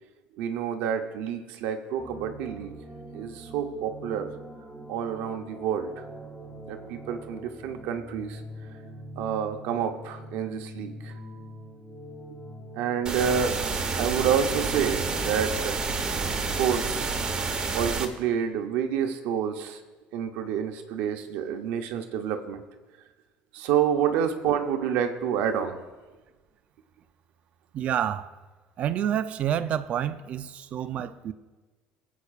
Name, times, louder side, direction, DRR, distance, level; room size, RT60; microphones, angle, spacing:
voice 1, 0.4-2.7 3.1-4.3 4.9-6.0 6.7-8.4 9.2-11.4 12.7-13.6 13.9-16.3 16.6-17.2 17.7-19.8 20.1-22.6 23.5-25.8, right 8 dB, 80° right, 0.8 m, -28 dB
sound 1, 2.0-17.1, right 1 dB, 10° left, 1.7 m, -44 dB
sound 2, 13.1-18.1, right 4 dB, 25° right, 1.0 m, -29 dB
voice 2, 27.7-28.3 28.8-31.3, right 10 dB, 45° right, 0.5 m, -28 dB
23.5 x 8.2 x 2.4 m
cardioid pair, 140°, 3 cm